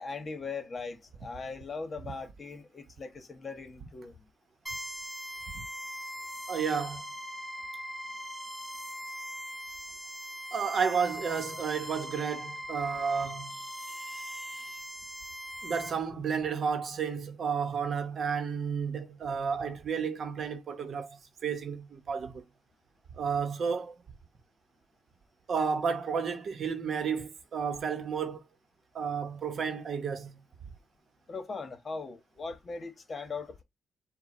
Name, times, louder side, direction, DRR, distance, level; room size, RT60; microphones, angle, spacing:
voice 1, 0.0-4.3 31.3-33.6, left 4 dB, 35° left, 1.2 m, -40 dB
sound 1, 4.7-15.9, equal, 5° right, 1.6 m, -41 dB
voice 2, 6.5-7.0 10.5-14.8 15.6-22.4 23.1-23.9 25.5-28.4 28.9-30.4, right 6 dB, 55° right, 0.9 m, -32 dB
4.6 x 2.2 x 4.2 m
cardioid pair, 90°, 0 cm